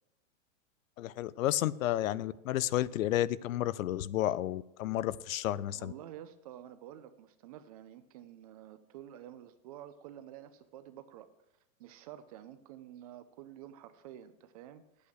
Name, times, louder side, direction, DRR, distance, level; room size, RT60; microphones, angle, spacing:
voice 1, 1.0-5.9, left 13 dB, 75° left, 19 dB, 0.6 m, -31 dB
voice 2, 5.7-11.3 11.8-15.1, right 11 dB, 30° right, 12 dB, 0.4 m, -50 dB
10.0 x 8.5 x 6.4 m, 0.91 s
supercardioid pair, 155°, 41 cm